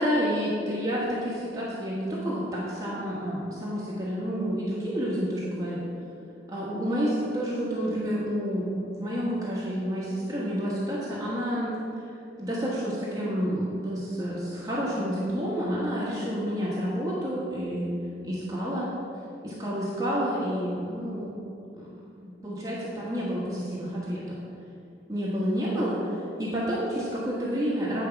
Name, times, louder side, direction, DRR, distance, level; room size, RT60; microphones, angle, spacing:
voice 1, 0.0-5.9 6.5-11.7 12.4-17.9 18.2-18.9 19.4-21.4 21.8-21.9 22.2-24.3 25.1-28.1, equal, 20° right, -7 dB, 1.3 m, -29 dB
9.1 x 4.7 x 5.7 m, 2.5 s
head